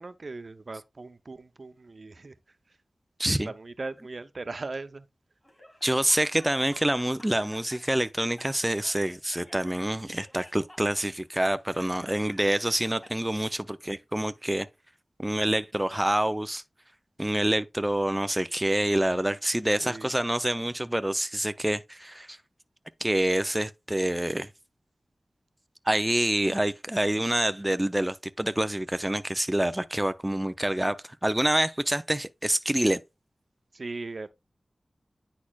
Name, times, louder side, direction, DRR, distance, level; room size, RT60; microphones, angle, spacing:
voice 1, 0.0-2.3 3.3-5.1 19.8-20.1 33.7-34.3, right 3 dB, 65° right, 0.6 m, -38 dB
voice 2, 3.2-3.5 5.8-14.7 15.2-16.6 17.2-22.4 23.0-24.5 25.9-33.0, right 1 dB, 15° right, 0.6 m, -27 dB
Laughter, 5.4-13.1, left 1 dB, 20° left, 3.9 m, -52 dB
9.8 x 4.2 x 2.3 m
wide cardioid pair, 55°, 0 cm